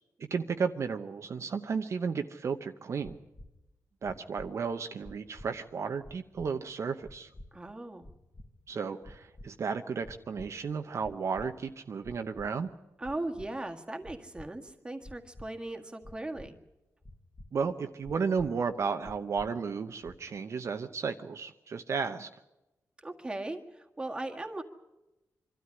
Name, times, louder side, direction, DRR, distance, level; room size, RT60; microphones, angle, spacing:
voice 1, 0.3-3.2 4.0-7.3 8.7-12.7 17.5-22.3, right 5 dB, 55° right, 6 dB, 0.8 m, -33 dB
sound 1, 3.0-3.5 4.0-4.5 5.0-5.5 6.0-6.5 7.0-7.5 8.0-8.5 9.0-9.5 10.0-10.5 11.0-11.5 12.0-12.5 13.0-13.5 14.0-14.5 15.0-15.5 16.0-16.5 17.0-17.5 18.0-18.5 19.0-19.5 20.0-20.4, left 1 dB, 25° left, 1.6 m, -48 dB
voice 2, 7.5-8.1 13.0-16.6 23.0-24.6, right 2 dB, 15° right, 3 dB, 1.8 m, -38 dB
24.5 x 13.0 x 9.7 m, 0.97 s
wide cardioid pair, 110°, 6 cm